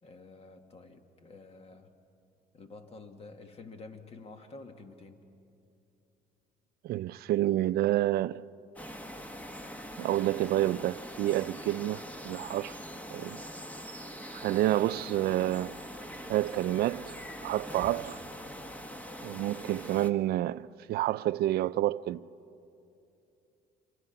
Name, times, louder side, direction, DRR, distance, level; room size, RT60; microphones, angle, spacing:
voice 1, 0.0-2.0 2.5-5.3, left 3 dB, 35° left, 1.9 m, -49 dB
voice 2, 6.8-8.4 10.0-12.8 13.1-13.4 14.3-15.8 16.3-17.1 17.4-18.2 19.2-22.3, right 14 dB, 65° right, 0.5 m, -29 dB
sound 1, 8.8-20.1, equal, 10° left, 1.3 m, -43 dB
26.5 x 25.5 x 5.9 m
cardioid pair, 110°, 17 cm